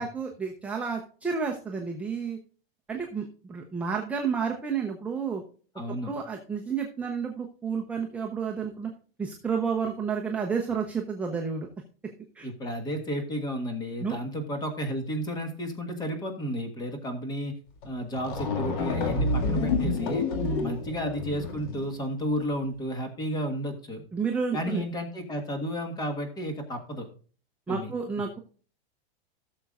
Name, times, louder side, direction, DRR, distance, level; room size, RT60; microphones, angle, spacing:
voice 1, 0.0-2.4 2.9-5.4 6.0-8.9 9.2-11.7 12.4-12.5 14.0-14.2 20.4-20.7 24.1-24.8 27.7-28.4, right 5 dB, 5° right, 1 dB, 0.6 m, -31 dB
voice 2, 5.7-6.1 12.4-17.5 17.8-20.3 20.6-24.0 24.5-27.1 27.7-27.9, equal, 15° left, 5 dB, 1.5 m, -32 dB
sound 1, 17.8-17.9 18.1-21.9, left 3 dB, 50° left, 2.1 m, -29 dB
16.5 x 6.9 x 2.4 m, 0.40 s
supercardioid pair, 165°, 31 cm